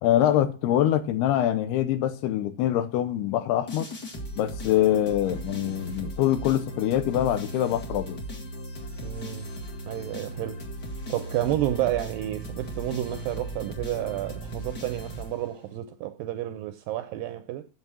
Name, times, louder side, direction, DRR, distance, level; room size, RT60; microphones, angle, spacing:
voice 1, 0.0-3.9 4.4-8.2, left 12 dB, 85° left, 2.9 m, -24 dB
sound 1, 3.7-15.8, right 1 dB, 35° left, 1.9 m, -37 dB
voice 2, 9.0-9.5 9.9-10.6 11.1-17.7, right 13 dB, 80° right, 2.1 m, -30 dB
8.1 x 7.5 x 6.1 m
omnidirectional pair, 4.6 m